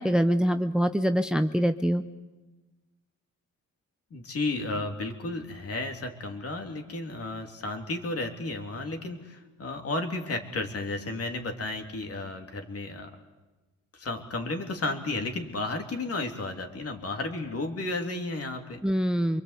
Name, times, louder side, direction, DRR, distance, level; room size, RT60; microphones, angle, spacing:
voice 1, 0.0-2.0 18.8-19.4, equal, 5° right, 9 dB, 0.8 m, -24 dB
voice 2, 4.1-13.2 13.9-18.8, left 2 dB, 50° left, 4 dB, 3.1 m, -33 dB
25.5 x 23.0 x 8.3 m, 1.2 s
cardioid pair, 90°, 30 cm